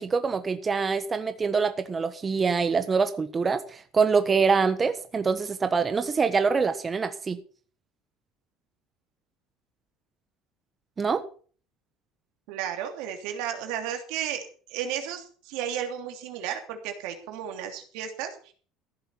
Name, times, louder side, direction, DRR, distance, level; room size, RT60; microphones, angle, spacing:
voice 1, 0.0-7.4 11.0-11.2, right 5 dB, 25° right, 9 dB, 1.3 m, -25 dB
voice 2, 12.5-14.4 14.7-18.5, right 9 dB, 80° right, 5 dB, 3.0 m, -33 dB
15.0 x 7.3 x 7.1 m, 0.43 s
supercardioid pair, 105°, 0 cm